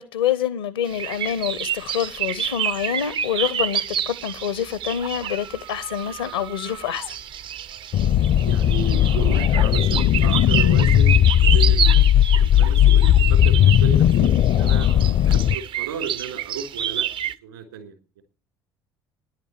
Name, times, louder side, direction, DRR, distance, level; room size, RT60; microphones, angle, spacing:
voice 1, 0.0-7.2, left 9 dB, 75° left, 0.8 m, -26 dB
sound 1, 0.9-17.3, right 9 dB, 40° right, 0.5 m, -29 dB
sound 2, 7.9-15.5, left 11 dB, 45° left, 0.6 m, -17 dB
voice 2, 8.4-14.9 15.2-18.2, right 7 dB, 75° right, 3.8 m, -34 dB
10.5 x 9.1 x 8.4 m
figure-of-eight pair, 60°, 12 cm